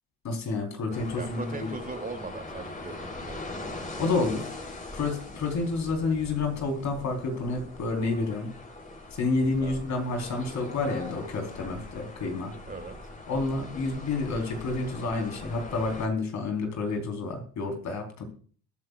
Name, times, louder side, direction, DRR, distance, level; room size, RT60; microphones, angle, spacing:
voice 1, 0.2-1.7 4.0-4.5 4.9-8.5 9.2-12.5 13.3-18.2, left 3 dB, 70° left, 3 dB, 4.3 m, -29 dB
sound 1, 0.9-16.1, left 2 dB, 25° left, 4.0 m, -41 dB
voice 2, 0.9-3.6 9.6-9.8 12.7-13.1, right 4 dB, 30° right, 5 dB, 3.0 m, -40 dB
21.5 x 9.4 x 2.5 m, 0.43 s
cardioid pair, 90°, 30 cm